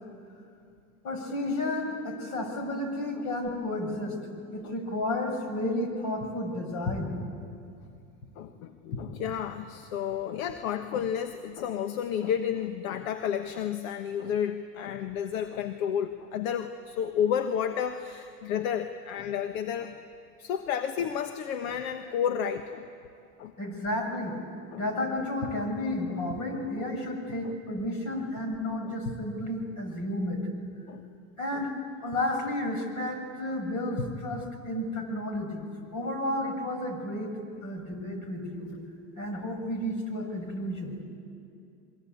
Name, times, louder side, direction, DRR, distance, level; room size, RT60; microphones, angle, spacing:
voice 1, 1.0-4.2 4.5-7.1 23.6-24.4 24.8-30.5 31.4-31.7 32.0-35.7 35.9-38.7 39.2-40.9, left 1 dB, 45° left, 4 dB, 6.9 m, -32 dB
voice 2, 8.4-20.0 20.4-22.9 23.4-23.5 24.7-24.8 27.4-27.5 28.8-28.9 30.9-31.0 31.5-31.6, left 8 dB, 65° left, 8 dB, 1.4 m, -31 dB
27.5 x 23.5 x 8.7 m, 2.5 s
hypercardioid pair, 100°, 44 cm